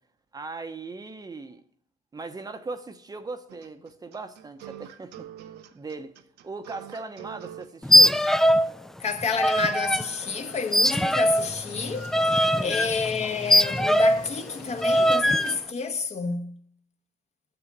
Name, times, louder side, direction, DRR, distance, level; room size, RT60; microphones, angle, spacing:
voice 1, 0.3-1.6 2.1-5.3 5.7-6.1 6.4-8.2 12.5-12.9, right 3 dB, 20° right, 0.8 m, -38 dB
sound 1, 3.5-7.7, right 12 dB, 80° right, 0.8 m, -44 dB
sound 2, 7.8-8.7 9.0-10.1 10.7-14.3 14.8-15.6, equal, ahead, 0.3 m, -21 dB
voice 2, 9.0-16.6, left 5 dB, 40° left, 1.3 m, -30 dB
sound 3, 10.2-15.6, left 5 dB, 85° left, 2.7 m, -45 dB
9.8 x 7.0 x 7.3 m
cardioid pair, 110°, 17 cm